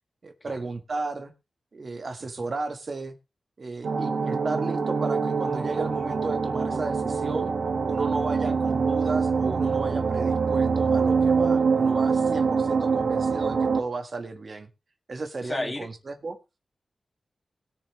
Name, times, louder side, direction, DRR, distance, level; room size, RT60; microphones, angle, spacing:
voice 1, 0.2-1.3 1.7-3.1 3.6-7.5 7.9-14.7 15.1-16.4, right 3 dB, 45° right, 1.5 m, -34 dB
sound 1, 3.8-13.8, right 5 dB, 75° right, 1.6 m, -24 dB
voice 2, 15.4-15.9, left 2 dB, 25° left, 2.1 m, -33 dB
20.5 x 7.0 x 3.1 m
wide cardioid pair, 130°, 0 cm